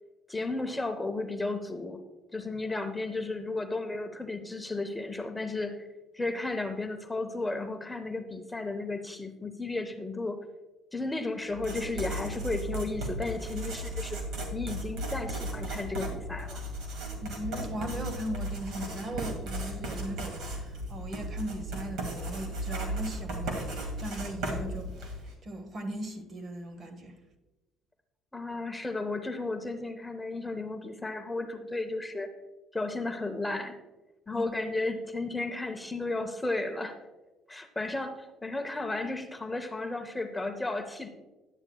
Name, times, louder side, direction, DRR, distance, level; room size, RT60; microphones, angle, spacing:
voice 1, 0.3-2.0 2.3-5.9 6.1-10.4 10.9-14.2 14.5-16.6 28.3-32.3 32.7-33.7 34.3-37.1 37.5-41.1, left 2 dB, 10° left, 7 dB, 0.6 m, -34 dB
Writing, 11.5-25.3, right 1 dB, 75° right, 1.9 m, -36 dB
voice 2, 17.2-27.1 34.3-34.4, right 1 dB, 40° right, 7 dB, 1.1 m, -38 dB
10.5 x 8.8 x 2.3 m, 1.1 s
cardioid pair, 115°, 0 cm